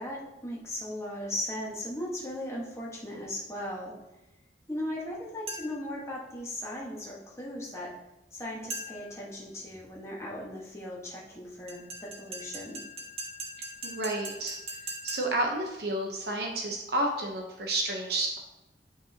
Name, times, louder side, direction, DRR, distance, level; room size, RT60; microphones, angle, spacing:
voice 1, 0.0-4.0 4.7-7.9 8.3-12.8, left 1 dB, 15° left, -4 dB, 1.5 m, -37 dB
sound 1, 5.5-5.9 8.7-9.2 11.7-15.5, right 1 dB, 35° right, 1.3 m, -40 dB
voice 2, 13.8-14.6 15.0-18.4, right 1 dB, 60° right, 0 dB, 1.0 m, -30 dB
9.4 x 5.8 x 2.9 m, 0.94 s
head